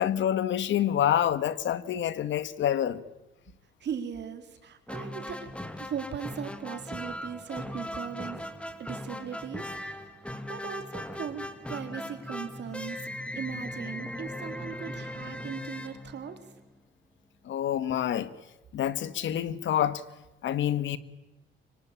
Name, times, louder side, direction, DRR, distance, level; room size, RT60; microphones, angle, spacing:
voice 1, 0.0-3.0 17.5-18.3 18.7-20.0 20.4-21.0, left 10 dB, 70° left, 1.7 m, -27 dB
voice 2, 3.8-5.5 5.8-8.5 8.8-10.2 10.5-13.1 13.3-16.4, right 7 dB, 60° right, 3.9 m, -38 dB
sound 1, 4.9-16.7, left 1 dB, 5° left, 2.4 m, -39 dB
25.0 x 24.0 x 9.0 m
cardioid pair, 90°, 20 cm